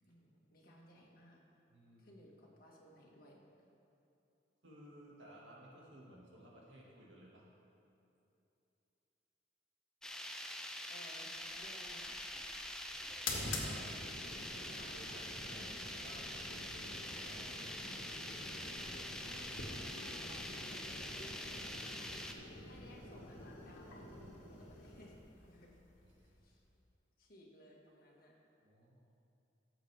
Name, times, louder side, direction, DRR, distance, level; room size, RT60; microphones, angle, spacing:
voice 1, 0.1-1.4 2.0-3.4 10.9-12.4 12.9-13.1 19.2-25.1 25.5-25.8 26.2-26.6 27.2-28.3, equal, 50° left, -3 dB, 1.8 m, -60 dB
voice 2, 1.7-2.2 4.6-7.5 11.6-11.7 12.8-14.0 14.6-18.2 26.0-26.3 28.6-29.0, right 1 dB, 80° right, -4 dB, 2.1 m, -57 dB
sound 1, 10.0-22.3, left 1 dB, 5° left, 0.4 m, -45 dB
sound 2, 11.4-26.7, left 2 dB, 90° left, 1.6 m, -48 dB
15.0 x 7.6 x 3.5 m, 2.8 s
head